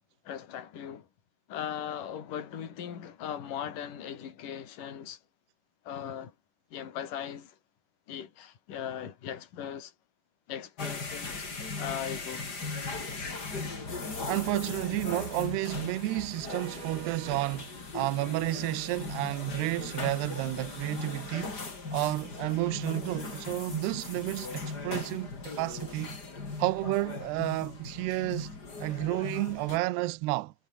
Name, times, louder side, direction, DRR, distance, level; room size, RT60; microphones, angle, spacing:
voice 1, 0.2-1.1 1.5-5.2 5.8-6.3 6.7-7.6 8.1-9.9 10.5-11.5 11.8-12.5, left 9 dB, 50° left, 4.5 m, -39 dB
sound 1, 10.8-29.8, left 3 dB, 25° left, 3.7 m, -38 dB
voice 2, 14.3-21.6 21.9-26.2 26.6-28.5 28.8-30.5, right 18 dB, 75° right, 2.8 m, -31 dB
omnidirectional pair, 5.1 m